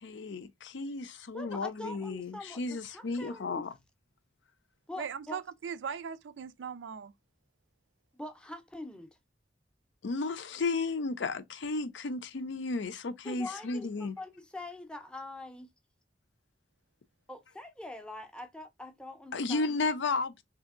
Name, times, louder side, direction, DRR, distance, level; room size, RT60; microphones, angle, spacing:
voice 1, 0.0-3.7 10.0-14.1 19.3-20.4, left 3 dB, 85° left, 0.5 m, -33 dB
voice 2, 1.3-3.7 4.9-5.4 8.1-9.2 13.2-15.7 17.3-19.8, left 1 dB, 5° left, 0.5 m, -44 dB
voice 3, 5.0-7.1, right 7 dB, 90° right, 0.4 m, -39 dB
3.3 x 2.8 x 2.4 m
head